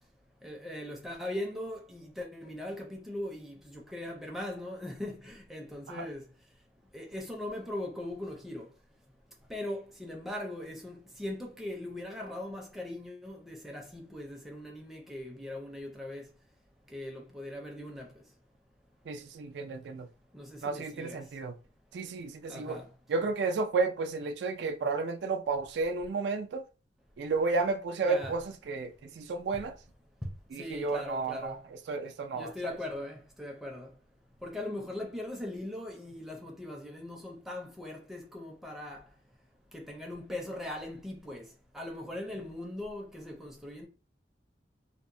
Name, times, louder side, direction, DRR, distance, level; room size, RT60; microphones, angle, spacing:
voice 1, 0.4-6.3 6.9-8.7 9.5-16.3 16.9-18.1 20.3-21.2 22.5-22.9 28.0-28.4 30.2-30.3 30.6-31.6 32.3-33.9 34.4-39.0 39.7-41.4 41.7-43.9, left 1 dB, ahead, 0.4 m, -40 dB
voice 2, 19.1-20.1 20.6-21.5 21.9-22.8 23.1-26.6 27.2-29.7 30.5-32.7, right 4 dB, 75° right, 0.4 m, -32 dB
2.8 x 2.0 x 2.5 m
head